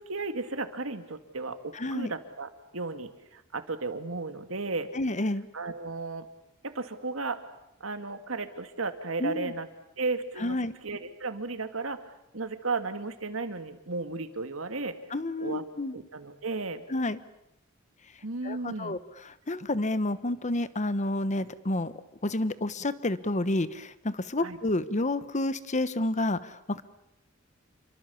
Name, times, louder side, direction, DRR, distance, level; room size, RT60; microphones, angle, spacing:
voice 1, 0.0-4.9 5.5-6.3 6.6-7.4 7.8-9.7 10.0-10.6 10.8-12.0 12.3-15.0 15.4-15.6 15.9-16.8 18.2-19.0 24.4-24.6, right 3 dB, 85° right, 8 dB, 2.2 m, -34 dB
voice 2, 1.7-2.1 4.9-5.5 9.2-9.5 10.4-10.7 15.1-16.0 16.9-17.2 18.4-19.0 19.2-21.9 22.2-26.8, left 2 dB, 35° left, 14 dB, 1.2 m, -29 dB
28.5 x 24.0 x 7.1 m, 0.87 s
head